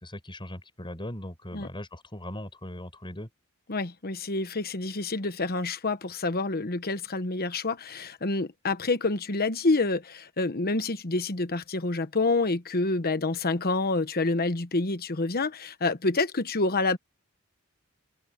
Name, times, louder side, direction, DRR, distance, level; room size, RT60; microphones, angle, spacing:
voice 1, 0.0-3.3, left 1 dB, 20° left, 5.3 m, -39 dB
voice 2, 3.7-17.0, left 3 dB, 45° left, 1.2 m, -28 dB
head